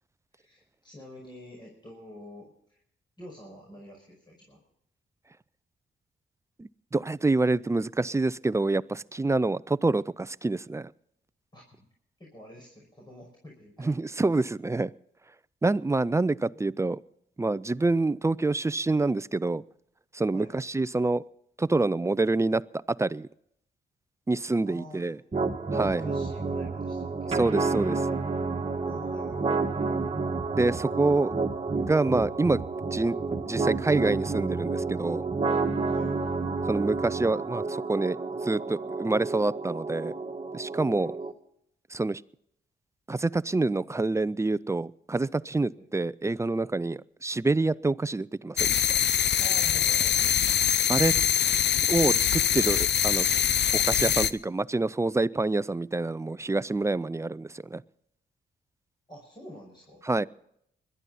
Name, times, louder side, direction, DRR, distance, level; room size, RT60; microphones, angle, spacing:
voice 1, 0.3-2.8 3.2-4.6 11.5-11.9 12.2-13.9 20.3-20.6 24.6-25.1 25.8-27.3 28.8-29.7 35.9-36.2 40.9-41.1 45.8-45.9 49.4-50.4 59.1-60.0, equal, 25° left, -2 dB, 5.7 m, -47 dB
voice 2, 6.6-10.9 13.8-14.9 15.6-17.0 17.4-19.6 20.1-21.2 21.6-23.3 24.3-25.2 25.7-26.1 27.3-28.1 30.5-31.3 31.8-32.6 32.9-33.2 33.5-35.2 36.7-38.2 38.4-40.1 40.5-41.1 41.9-42.2 43.1-49.0 50.9-51.1 51.9-53.3 53.7-57.8 60.0-60.3, right 2 dB, 15° right, 19 dB, 0.4 m, -27 dB
sound 1, 25.3-41.3, right 4 dB, 30° right, 1.7 m, -30 dB
sound 2, 48.6-54.3, left 9 dB, 65° left, 0.7 m, -24 dB
21.5 x 12.5 x 4.1 m, 0.72 s
cardioid pair, 80°, 19 cm